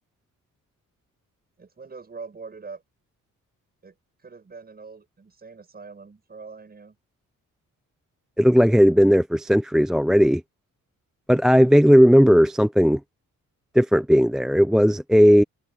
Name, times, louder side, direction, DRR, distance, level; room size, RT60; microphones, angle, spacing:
voice 1, 1.6-2.8 3.8-3.9 4.2-7.0 8.7-9.0, right 4 dB, 30° right, 6.2 m, -43 dB
voice 2, 8.4-10.4 11.3-13.0 13.7-15.4, equal, ahead, 0.4 m, -16 dB
open air
cardioid pair, 135°, 33 cm